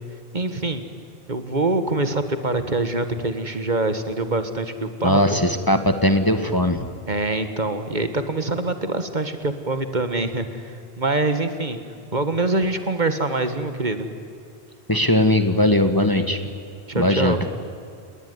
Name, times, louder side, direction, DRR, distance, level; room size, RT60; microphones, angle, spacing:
voice 1, 0.3-0.8 1.3-5.4 7.1-11.8 12.1-14.1 16.9-17.4, right 2 dB, 50° right, 9 dB, 1.8 m, -24 dB
voice 2, 5.0-6.9 14.9-16.4 16.9-17.4, left 1 dB, 20° left, 8 dB, 1.5 m, -19 dB
30.0 x 20.5 x 9.6 m, 2.5 s
omnidirectional pair, 1.0 m